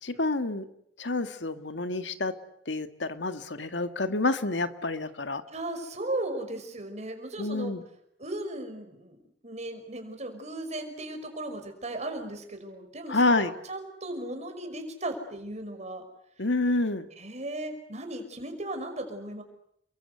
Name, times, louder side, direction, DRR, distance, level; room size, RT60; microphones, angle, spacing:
voice 1, 0.0-0.7 1.0-2.3 2.7-5.4 7.4-7.8 13.1-13.5 16.4-17.1, left 2 dB, 85° left, 9 dB, 1.9 m, -28 dB
voice 2, 5.5-7.7 8.2-9.2 9.4-16.0 17.2-19.4, right 1 dB, 40° right, 6 dB, 5.6 m, -36 dB
30.0 x 23.0 x 8.0 m, 0.72 s
head